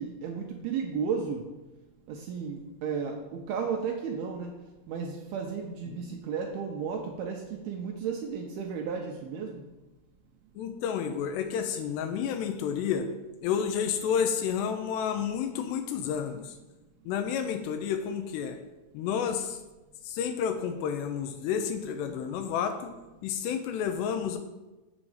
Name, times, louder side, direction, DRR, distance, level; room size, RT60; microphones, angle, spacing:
voice 1, 0.0-1.5 2.1-4.6 4.9-9.6, right 6 dB, 80° right, 2 dB, 2.3 m, -34 dB
voice 2, 10.6-13.1 13.4-16.5 17.1-18.6 18.9-19.6 20.0-22.9 23.2-24.4, left 7 dB, 80° left, 7 dB, 2.7 m, -30 dB
7.4 x 7.1 x 4.9 m, 1.1 s
omnidirectional pair, 5.1 m